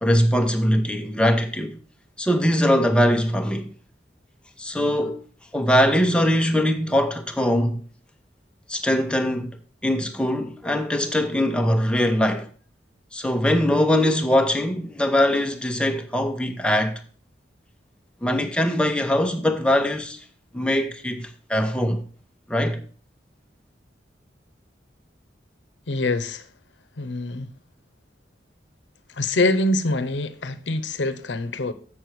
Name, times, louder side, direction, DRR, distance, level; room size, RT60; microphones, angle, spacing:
voice 1, 0.0-1.7 2.2-3.7 4.6-5.2 5.5-7.8 8.7-12.5 13.1-17.0 18.2-20.2 20.5-22.0 22.5-22.8, equal, 5° left, 0.9 m, -22 dB
voice 2, 25.9-26.5 27.0-27.5 29.1-31.7, left 2 dB, 85° left, 0.8 m, -24 dB
7.6 x 6.1 x 4.7 m
head